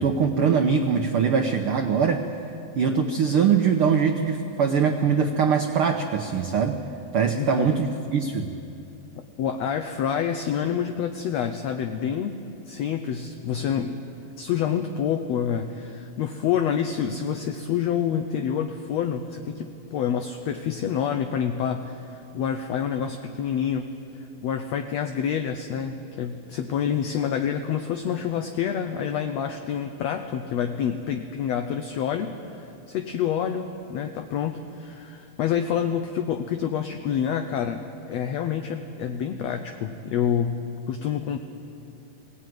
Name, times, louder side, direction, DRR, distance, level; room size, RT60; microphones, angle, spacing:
voice 1, 0.0-2.3 2.8-6.8 7.1-8.5, right 6 dB, 75° right, 5 dB, 1.2 m, -22 dB
voice 2, 7.4-7.8 9.4-14.0 14.4-23.9 24.1-40.6 40.9-41.4, left 8 dB, 75° left, 7 dB, 1.7 m, -27 dB
21.5 x 18.0 x 9.3 m, 2.7 s
omnidirectional pair, 3.7 m